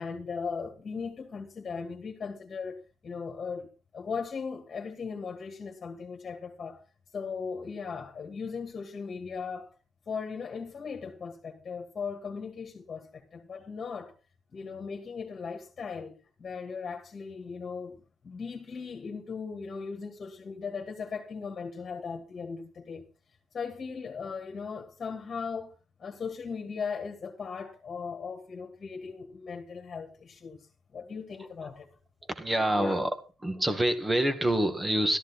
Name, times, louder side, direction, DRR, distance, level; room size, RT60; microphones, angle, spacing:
voice 1, 0.0-3.7 3.9-6.8 7.1-9.7 10.1-14.1 14.5-16.1 16.4-18.0 18.2-23.0 23.5-25.7 26.0-30.7 30.9-31.9 32.7-32.9, left 5 dB, 40° left, 2.5 m, -38 dB
voice 2, 32.3-33.1 33.4-35.2, right 1 dB, 15° right, 2.1 m, -26 dB
13.5 x 11.0 x 4.4 m
cardioid pair, 90°, 0 cm